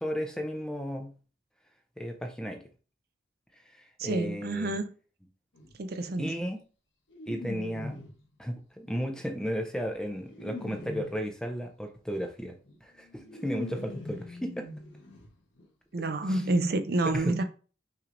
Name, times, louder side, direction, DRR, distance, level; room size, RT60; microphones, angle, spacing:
voice 1, 0.0-1.1 2.0-2.6 3.7-4.8 6.2-6.6 7.3-8.0 8.4-14.7 16.3-16.4 17.0-17.4, equal, 5° left, 0.6 m, -34 dB
voice 2, 4.0-4.9 5.8-6.4 15.9-17.4, right 2 dB, 50° right, 0.5 m, -28 dB
sound 1, 5.6-5.7 7.1-8.3 9.0-11.4 12.7-12.8 13.0-15.3 15.6-15.7 15.9-16.0, left 1 dB, 75° left, 1.1 m, -42 dB
5.7 x 3.2 x 2.5 m
head